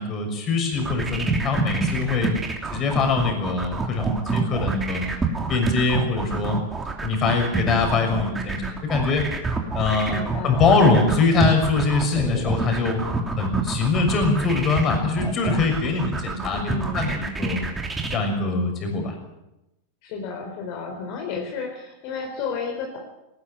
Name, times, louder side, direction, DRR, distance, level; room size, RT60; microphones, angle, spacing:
voice 1, 0.0-2.3 2.7-5.1 5.5-6.6 7.0-9.2 9.7-10.2 10.4-13.0 13.4-17.7 18.1-19.1, left 4 dB, 25° left, 4 dB, 6.3 m, -23 dB
sound 1, 0.7-18.2, right 4 dB, 10° right, 3.1 m, -27 dB
voice 2, 10.1-10.6 16.5-17.1 20.0-23.0, left 5 dB, 50° left, 2 dB, 4.1 m, -32 dB
19.0 x 19.0 x 8.3 m, 0.93 s
supercardioid pair, 155°, 0 cm